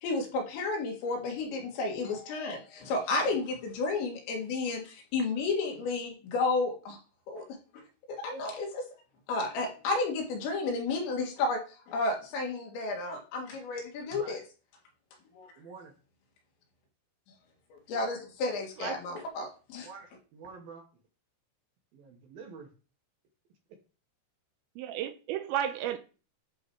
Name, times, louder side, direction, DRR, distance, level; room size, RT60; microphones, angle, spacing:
voice 1, 0.0-7.0 7.3-7.8 8.1-8.9 9.3-14.4 15.3-15.5 17.7-19.9, left 3 dB, 70° left, 3.9 m, -32 dB
voice 2, 15.6-15.9 19.8-20.8 21.9-22.7, right 5 dB, 65° right, 2.6 m, -48 dB
voice 3, 24.8-26.0, right 10 dB, 80° right, 2.8 m, -32 dB
11.5 x 3.8 x 4.7 m
omnidirectional pair, 5.4 m